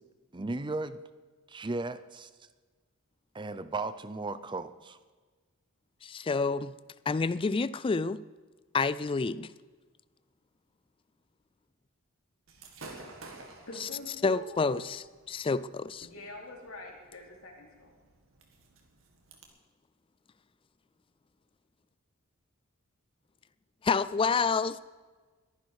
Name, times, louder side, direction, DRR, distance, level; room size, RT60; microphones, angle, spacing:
voice 1, 0.3-1.0 1.5-2.3 3.3-5.0, right 3 dB, 20° right, 0.6 m, -35 dB
voice 2, 6.0-6.7 7.1-8.2 8.7-9.5 13.8-13.9 14.2-16.1 23.8-24.8, left 4 dB, 25° left, 0.3 m, -28 dB
Gunshot gunfire / Fireworks, 12.5-19.4, right 2 dB, 65° right, 2.2 m, -52 dB
voice 3, 13.7-14.9 16.0-17.9, left 2 dB, 80° left, 3.1 m, -45 dB
22.0 x 10.5 x 4.9 m
head